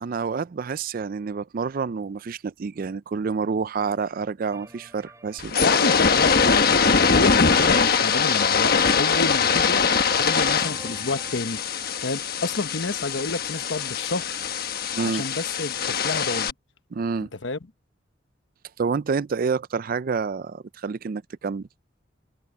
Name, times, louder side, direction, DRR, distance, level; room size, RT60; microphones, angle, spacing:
voice 1, 0.0-5.6 14.9-15.2 16.9-17.3 18.8-21.7, right 5 dB, 50° right, 0.4 m, -28 dB
sound 1, 4.5-5.9 7.3-11.4, right 2 dB, 15° right, 3.2 m, -45 dB
sound 2, 5.4-16.5, left 5 dB, 55° left, 1.2 m, -22 dB
voice 2, 5.6-9.8 10.1-11.6 12.0-14.4 15.0-16.5 17.4-17.6, left 3 dB, 70° left, 1.1 m, -29 dB
head